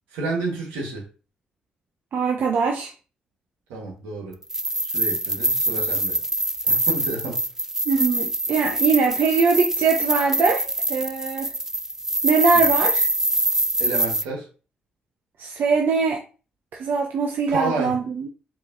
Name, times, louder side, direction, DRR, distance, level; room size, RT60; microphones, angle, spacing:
voice 1, 0.1-1.1 3.7-4.4 4.8-6.2 6.6-7.4 12.5-12.6 13.8-14.5 17.5-18.0, right 3 dB, 85° right, -1 dB, 1.4 m, -30 dB
voice 2, 2.1-2.9 7.9-11.5 12.2-13.0 15.4-16.2 16.7-18.3, right 5 dB, 65° right, 1 dB, 0.6 m, -22 dB
sound 1, 4.4-14.2, right 1 dB, 10° right, 0.3 m, -24 dB
4.6 x 3.1 x 2.6 m, 0.35 s
hypercardioid pair, 50°, 4 cm